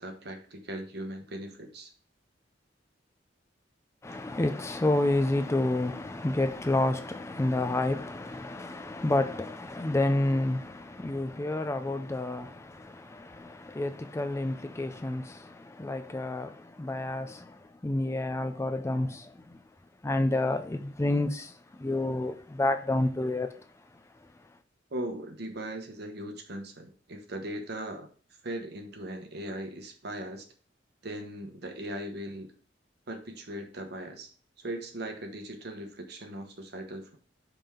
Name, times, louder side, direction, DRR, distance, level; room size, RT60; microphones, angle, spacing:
voice 1, 0.0-1.9 4.1-4.2 24.9-28.1 28.4-30.5 31.0-32.5 33.1-37.2, right 1 dB, 60° right, 1.1 m, -39 dB
voice 2, 4.0-19.6 20.0-23.6, left 2 dB, 15° left, 0.4 m, -29 dB
5.3 x 3.6 x 5.7 m
head